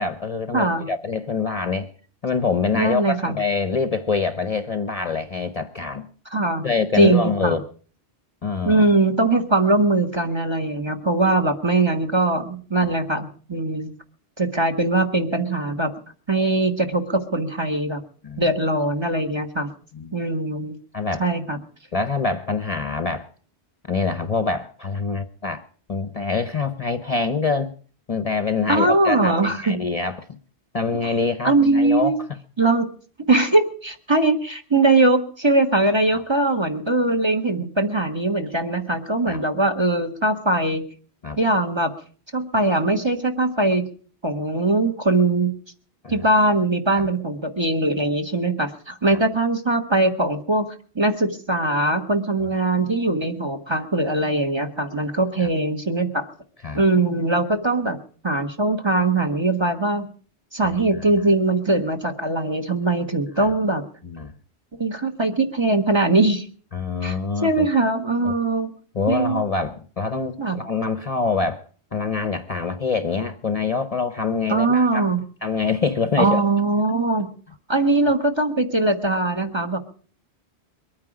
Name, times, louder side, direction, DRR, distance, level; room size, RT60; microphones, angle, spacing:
voice 1, 0.0-1.9 2.2-6.1 6.6-7.6 8.4-8.8 12.8-12.9 18.2-18.4 19.9-20.2 20.9-21.2 21.9-23.3 23.9-25.6 25.9-27.7 28.1-30.4 30.7-32.1 36.1-36.2 39.3-39.4 41.2-41.4 46.0-46.2 55.4-55.5 56.6-56.8 60.6-60.7 63.4-63.5 64.0-64.3 66.7-67.7 68.2-68.3 68.9-71.6 71.9-75.1 75.4-76.4, left 4 dB, 40° left, 9 dB, 0.8 m, -25 dB
voice 2, 0.5-0.9 2.7-3.4 6.3-6.7 6.9-7.6 8.6-13.9 14.4-15.9 16.3-18.0 18.4-19.7 20.1-20.8 21.2-21.6 28.7-29.8 31.0-31.1 31.4-32.1 32.6-32.9 33.3-40.8 41.4-41.9 42.3-43.8 44.2-45.5 46.1-50.7 50.9-56.3 56.7-58.0 58.2-60.1 60.5-63.8 64.8-66.5 67.0-68.7 69.1-69.4 70.4-70.6 74.5-75.2 76.2-77.3 77.7-79.8, right 2 dB, 25° right, 6 dB, 1.4 m, -21 dB
22.5 x 9.5 x 4.9 m, 0.44 s
omnidirectional pair, 1.1 m